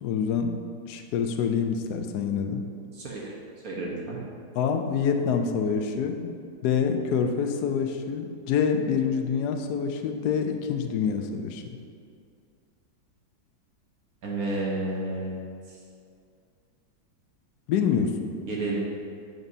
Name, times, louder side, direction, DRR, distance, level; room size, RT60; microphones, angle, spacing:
voice 1, 0.0-0.6 0.9-2.6 4.6-6.4 6.6-11.7 17.7-18.3, left 6 dB, 75° left, 5 dB, 0.9 m, -26 dB
voice 2, 2.9-3.3 3.6-4.2 14.2-15.4 15.7-15.8 18.5-18.8, right 2 dB, 55° right, -4 dB, 1.3 m, -31 dB
9.1 x 5.3 x 2.7 m, 2.3 s
omnidirectional pair, 2.1 m